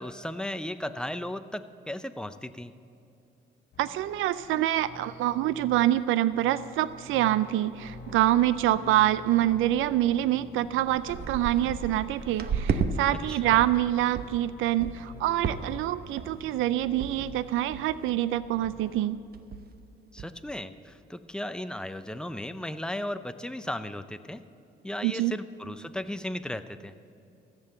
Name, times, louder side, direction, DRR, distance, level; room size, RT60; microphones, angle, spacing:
voice 1, 0.0-2.7 13.1-13.7 20.1-24.4 24.8-26.9, left 1 dB, 5° left, 10 dB, 0.6 m, -36 dB
sound 1, 3.7-19.0, left 2 dB, 60° left, 1.7 m, -49 dB
voice 2, 3.8-19.2 25.0-25.3, right 13 dB, 85° right, 16 dB, 0.4 m, -26 dB
sound 2, 6.9-7.0 7.5-7.6 7.9-8.3 8.6-8.9 9.5-9.6 10.2-10.3 10.6-12.9 13.3-13.8 14.2-14.4 14.8-15.1 15.4-15.9 16.2-16.5 17.0-17.1 17.4-17.5 17.7-18.1 18.5-18.7 19.0-19.1 19.3-19.8 20.2-20.3, right 6 dB, 50° right, 0.9 m, -33 dB
14.0 x 7.7 x 8.1 m, 2.7 s
cardioid pair, 90°, 20 cm